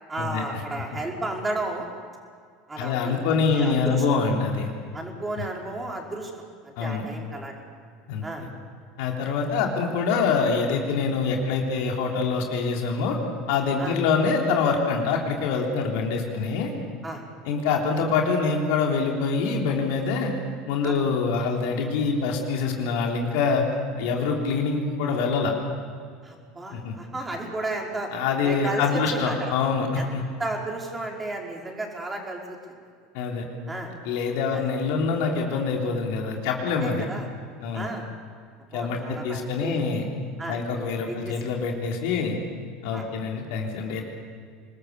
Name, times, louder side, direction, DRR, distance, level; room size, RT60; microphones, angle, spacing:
voice 1, 0.1-1.9 2.7-4.0 4.9-6.3 6.6-7.5 8.2-8.5 13.8-14.0 17.0-17.2 20.8-21.0 26.2-28.1 28.4-29.5 29.9-30.1 30.4-32.6 33.7-33.9 34.5-34.7 36.6-37.3 37.7-38.1 38.7-39.8 40.4-40.6 41.1-41.4 42.9-43.1, right 2 dB, 15° right, 0 dB, 5.0 m, -33 dB
voice 2, 2.8-4.7 5.4-5.5 6.8-7.0 8.1-8.3 9.0-13.2 13.5-16.7 17.4-20.3 20.7-23.6 24.0-25.5 26.7-26.9 28.1-30.2 33.1-33.4 34.0-37.1 37.6-37.9 38.7-40.1 40.5-42.4 42.8-44.0, left 5 dB, 60° left, 1 dB, 3.5 m, -25 dB
26.5 x 20.5 x 7.0 m, 2.1 s
figure-of-eight pair, 75°, 0 cm